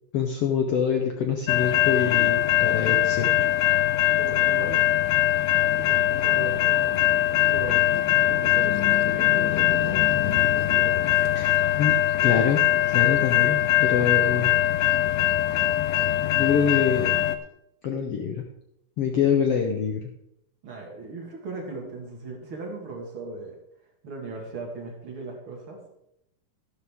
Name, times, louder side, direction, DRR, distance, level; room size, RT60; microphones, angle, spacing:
voice 1, 0.1-3.5 11.4-12.0 12.2-14.5 16.3-17.1 17.8-18.4 19.0-20.0, left 7 dB, 70° left, 3 dB, 1.5 m, -25 dB
sound 1, 1.5-17.4, left 13 dB, 85° left, 2.2 m, -22 dB
voice 2, 4.2-4.8 5.8-11.0 19.2-19.3 20.6-23.6 24.0-25.9, right 3 dB, 45° right, 0 dB, 2.4 m, -38 dB
13.0 x 12.0 x 3.6 m, 0.79 s
omnidirectional pair, 3.7 m